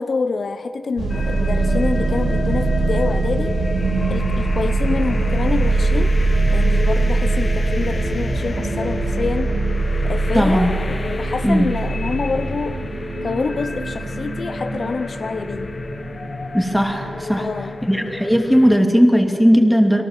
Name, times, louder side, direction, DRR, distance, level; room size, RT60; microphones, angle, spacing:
voice 1, 0.0-3.6 4.1-6.2 6.5-9.6 10.0-12.8 13.2-15.7 17.3-17.8, left 4 dB, 55° left, 10 dB, 0.7 m, -26 dB
sound 1, 1.0-17.8, right 2 dB, 80° right, 2.8 m, -22 dB
sound 2, 1.1-18.8, left 3 dB, 35° left, 1.1 m, -31 dB
voice 2, 10.3-10.8 11.4-11.7 16.5-17.5 17.8-20.0, equal, ahead, 3 dB, 2.7 m, -16 dB
30.0 x 23.0 x 7.5 m, 3.0 s
wide cardioid pair, 115°, 0 cm